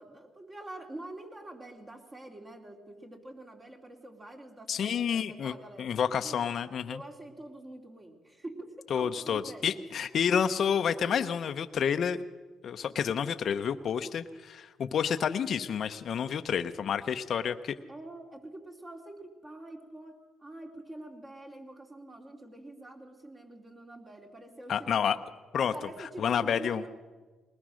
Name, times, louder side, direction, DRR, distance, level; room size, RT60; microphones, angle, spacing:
voice 1, 0.0-5.9 6.2-6.4 6.9-9.9 17.9-25.0 25.6-26.9, right 1 dB, 30° right, 2 dB, 2.8 m, -46 dB
voice 2, 4.7-7.0 8.9-12.2 12.6-17.7 24.7-25.2 25.5-25.7 26.2-26.9, left 7 dB, 60° left, 9 dB, 0.8 m, -29 dB
21.0 x 19.5 x 6.4 m, 1.3 s
cardioid pair, 90°, 0 cm